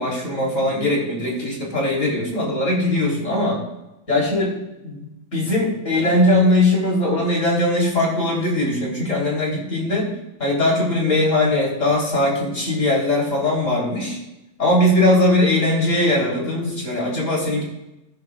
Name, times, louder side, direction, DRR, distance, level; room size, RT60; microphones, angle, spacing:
voice 1, 0.0-3.6 4.1-4.6 4.8-10.1 10.4-14.2 14.6-17.6, left 1 dB, 20° left, -3 dB, 3.7 m, -20 dB
20.0 x 10.5 x 2.5 m, 0.93 s
omnidirectional pair, 4.1 m